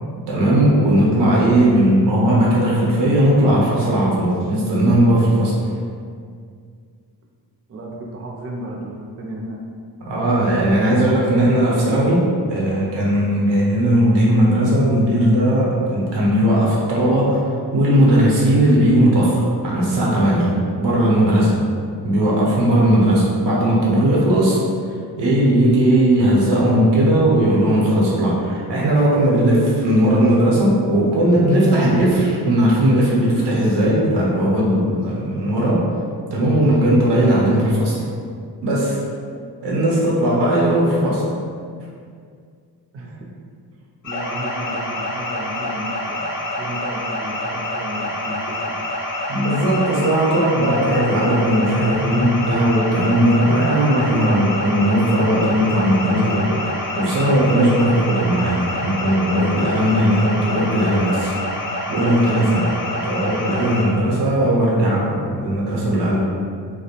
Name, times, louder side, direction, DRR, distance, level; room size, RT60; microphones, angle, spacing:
voice 1, 0.3-5.5 10.0-21.6 22.0-24.6 25.2-35.9 36.3-38.0 38.6-39.0 39.6-41.2 49.3-61.3 61.9-66.3, right 1 dB, 90° right, -5 dB, 0.7 m, -17 dB
voice 2, 7.7-9.6 22.6-22.8 42.9-43.3 44.0-48.8, right 1 dB, 35° right, -1 dB, 0.4 m, -33 dB
sound 1, 44.0-63.9, left 1 dB, 50° left, 0.5 m, -27 dB
2.3 x 2.0 x 2.8 m, 2.2 s
cardioid pair, 85°, 41 cm